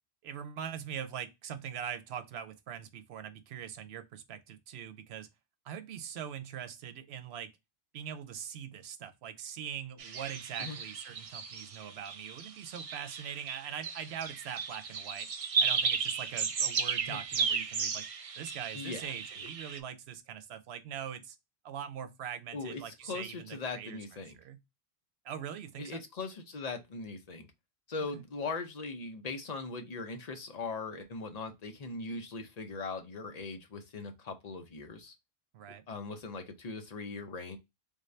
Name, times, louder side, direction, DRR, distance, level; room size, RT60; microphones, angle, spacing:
voice 1, 0.2-5.3 5.6-7.5 7.9-15.3 15.6-18.1 18.4-21.4 21.6-24.0 24.3-24.6 25.2-26.0 35.5-35.8, right 9 dB, 90° right, 0.9 m, -42 dB
sound 1, 10.0-19.8, right 5 dB, 50° right, 0.4 m, -34 dB
voice 2, 18.7-19.1 19.4-19.5 22.5-24.4 25.8-27.5 27.9-35.1 35.9-37.6, left 3 dB, 45° left, 0.7 m, -40 dB
3.5 x 2.6 x 3.1 m
omnidirectional pair, 1.0 m